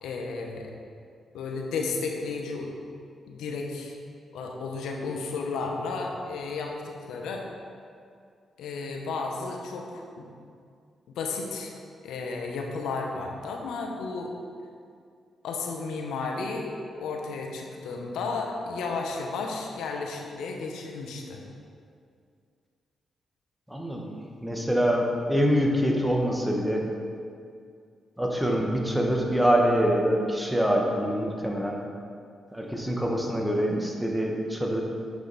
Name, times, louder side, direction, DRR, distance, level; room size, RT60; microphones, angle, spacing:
voice 1, 0.0-0.8 1.3-2.7 3.3-3.9 4.3-7.4 8.6-10.3 11.1-11.8 12.0-14.3 15.4-16.7 17.0-21.4, left 4 dB, 85° left, 1 dB, 0.9 m, -33 dB
voice 2, 23.7-24.1 24.4-26.8 28.2-31.8 32.5-34.8, equal, 5° right, 0 dB, 1.2 m, -25 dB
8.2 x 5.2 x 4.1 m, 2.3 s
cardioid pair, 65°, 0 cm